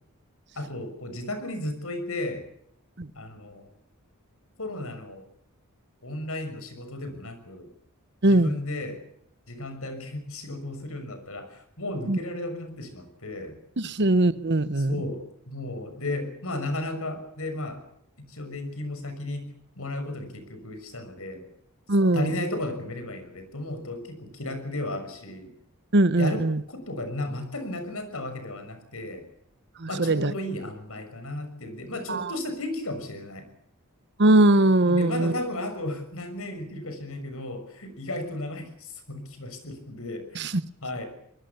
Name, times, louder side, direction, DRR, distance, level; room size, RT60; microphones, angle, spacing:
voice 1, 0.5-2.5 3.1-3.7 4.6-5.3 6.0-7.7 8.2-9.0 9.5-13.6 14.8-17.8 18.3-19.4 19.7-21.4 22.1-25.5 26.2-29.2 29.9-33.5 34.8-40.4 40.8-41.1, left 1 dB, 70° left, 6.3 m, -34 dB
voice 2, 8.2-8.6 12.1-12.2 13.8-14.9 21.9-22.3 25.9-26.6 29.8-30.3 32.1-32.3 34.2-35.3 40.3-40.6, right 2 dB, 50° right, 1.0 m, -21 dB
25.0 x 21.0 x 7.1 m
head